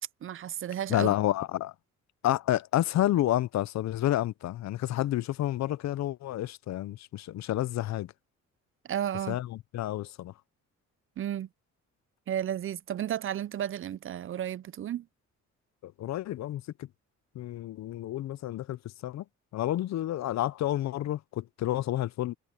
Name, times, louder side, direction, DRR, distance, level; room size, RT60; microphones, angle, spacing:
voice 1, 0.2-1.1 8.9-9.4 11.2-11.5 12.3-15.0, right 10 dB, 45° right, 0.5 m, -33 dB
voice 2, 0.9-1.7 2.2-8.1 9.3-10.3 15.8-16.9 17.4-19.2 19.5-22.3, left 13 dB, 65° left, 0.6 m, -30 dB
cardioid pair, 90°, 30 cm